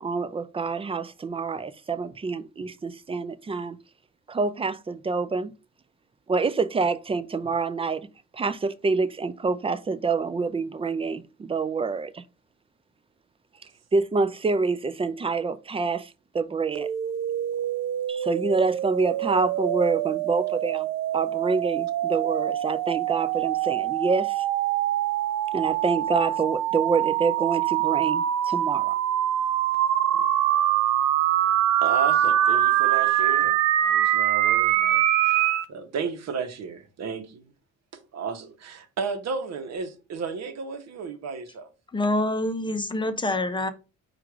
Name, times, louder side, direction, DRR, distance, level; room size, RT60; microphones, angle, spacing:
voice 1, 0.0-3.8 4.3-5.5 6.3-8.1 8.3-12.2 13.9-16.9 18.1-20.9 21.1-24.4 25.5-29.0, right 4 dB, 20° right, 0.4 m, -27 dB
sound 1, 16.8-35.6, right 12 dB, 85° right, 0.5 m, -24 dB
voice 2, 31.8-35.4 35.7-37.4 38.1-41.7, right 5 dB, 60° right, 1.0 m, -33 dB
voice 3, 41.9-43.7, left 2 dB, 15° left, 0.7 m, -26 dB
4.6 x 2.5 x 4.5 m
cardioid pair, 90°, 30 cm